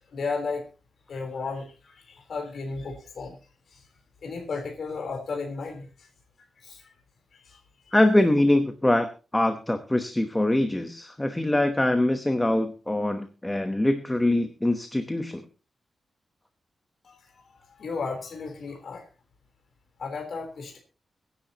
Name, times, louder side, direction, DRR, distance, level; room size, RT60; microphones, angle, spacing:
voice 1, 0.1-0.7 1.1-3.4 3.7-3.8 4.2-6.1 6.6-6.9 7.3-7.6 7.9-8.0 17.0-19.0 20.0-20.8, left 4 dB, 60° left, 2 dB, 3.7 m, -34 dB
voice 2, 7.9-9.1 9.3-15.4, left 1 dB, 10° left, 7 dB, 1.0 m, -23 dB
23.0 x 10.0 x 2.9 m, 0.34 s
wide cardioid pair, 175°, 0 cm